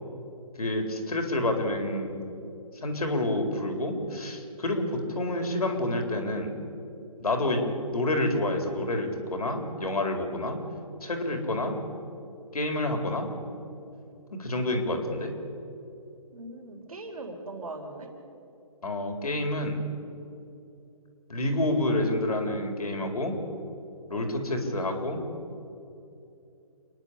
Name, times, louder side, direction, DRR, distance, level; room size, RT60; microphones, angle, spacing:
voice 1, 0.6-2.1 2.8-6.5 7.2-10.6 11.0-11.8 12.5-13.3 14.3-15.3 18.8-19.8 21.3-23.3 24.1-25.2, left 1 dB, 75° left, 4 dB, 4.4 m, -28 dB
voice 2, 16.3-18.1 24.1-24.3, right 2 dB, 70° right, 4 dB, 4.3 m, -40 dB
29.0 x 11.0 x 8.3 m, 2.7 s
hypercardioid pair, 155°, 19 cm